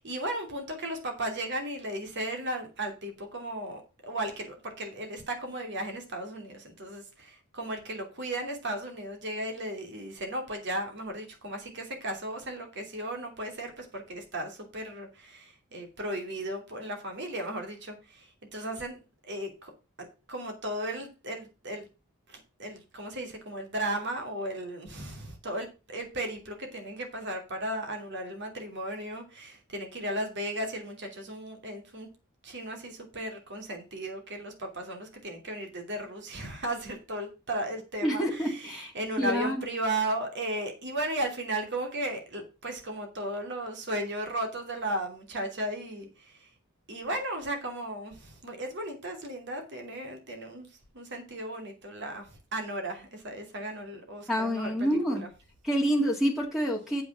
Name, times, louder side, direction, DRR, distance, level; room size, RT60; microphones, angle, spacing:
voice 1, 0.0-19.0 19.2-19.7 20.3-21.8 22.3-32.1 32.4-46.5 46.9-50.7 50.9-55.3, right 1 dB, 60° right, 4 dB, 2.8 m, -35 dB
voice 2, 38.0-39.6 54.3-55.2 55.6-57.0, equal, ahead, 0 dB, 1.9 m, -28 dB
7.7 x 6.0 x 6.3 m, 0.31 s
head